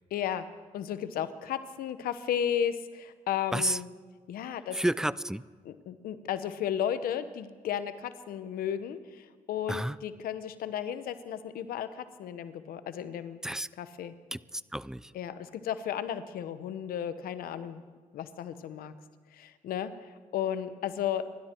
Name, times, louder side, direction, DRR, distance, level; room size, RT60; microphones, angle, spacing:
voice 1, 0.1-3.9 4.3-4.8 5.6-13.4 13.8-14.1 15.1-17.8 18.1-18.9 19.3-19.9 20.3-21.2, left 9 dB, 90° left, 12 dB, 0.9 m, -34 dB
voice 2, 4.7-5.4 9.7-10.0 13.4-13.7 14.3-15.1, right 1 dB, 5° right, 19 dB, 0.4 m, -31 dB
27.0 x 12.0 x 4.5 m, 1.4 s
cardioid pair, 65°, 15 cm